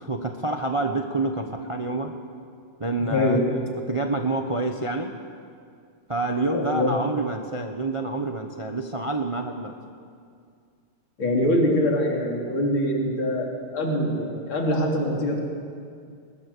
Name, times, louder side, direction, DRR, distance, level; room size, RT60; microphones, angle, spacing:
voice 1, 0.0-2.1 2.8-3.6 3.9-5.1 6.1-9.8, right 2 dB, 25° right, 5 dB, 0.7 m, -27 dB
voice 2, 3.0-3.5 6.5-6.9 11.2-15.4, left 1 dB, 75° left, -1 dB, 4.0 m, -24 dB
21.5 x 21.0 x 6.9 m, 2.3 s
omnidirectional pair, 2.3 m